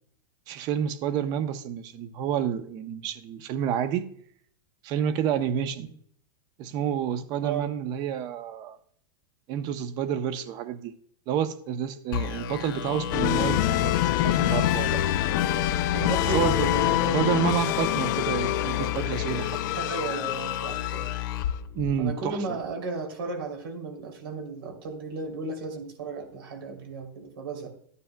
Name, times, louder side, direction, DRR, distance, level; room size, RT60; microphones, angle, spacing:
voice 1, 0.5-4.1 4.8-5.9 6.6-8.8 9.5-10.9 11.3-15.0 16.3-16.7 17.1-19.6 21.7-22.6, right 9 dB, 35° right, 0.7 m, -29 dB
sound 1, 12.1-22.4, left 10 dB, 85° left, 1.4 m, -34 dB
sound 2, 13.1-21.5, left 13 dB, 55° left, 0.5 m, -26 dB
voice 2, 15.9-17.3 19.7-21.1 22.0-27.7, right 3 dB, 85° right, 3.1 m, -34 dB
13.5 x 9.7 x 2.2 m
supercardioid pair, 155°, 12 cm